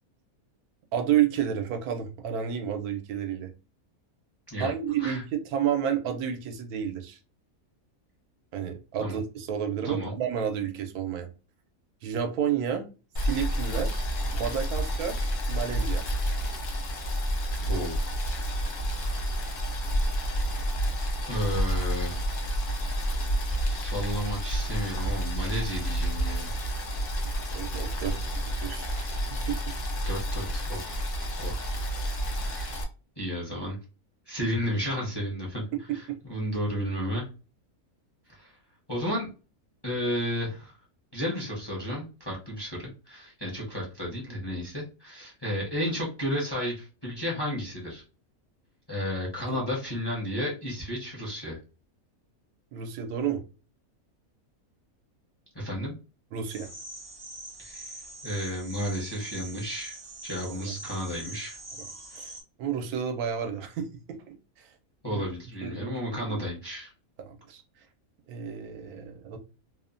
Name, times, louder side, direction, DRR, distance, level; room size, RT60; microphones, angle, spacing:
voice 1, 0.9-3.5 4.6-7.2 8.5-11.3 12.0-12.9 13.2-14.1 14.3-16.0 27.5-29.7 35.9-36.2 49.5-49.6 52.7-53.4 56.3-56.7 60.5-60.8 61.8-61.9 62.2-64.7 65.1-65.2 65.6-66.2 67.2-67.6 68.3-69.4, right 8 dB, 85° right, 5 dB, 1.1 m, -31 dB
Boiling, 13.2-32.8, equal, 75° left, 0.4 m, -29 dB
voice 2, 17.6-18.0 21.2-22.3 23.6-26.5 30.0-31.1 31.4-31.7 32.3-32.7 33.2-33.8 34.3-35.6 35.9-37.3 38.4-38.5 38.9-39.3 39.8-40.8 41.1-48.0 48.9-51.6 55.5-55.9 57.6-57.9 58.2-61.6 62.1-62.2 65.0-66.9, equal, 25° left, -3 dB, 0.6 m, -32 dB
sound 1, 56.5-62.4, right 2 dB, 30° right, 0.5 m, -43 dB
2.9 x 2.1 x 2.4 m, 0.33 s
omnidirectional pair, 1.5 m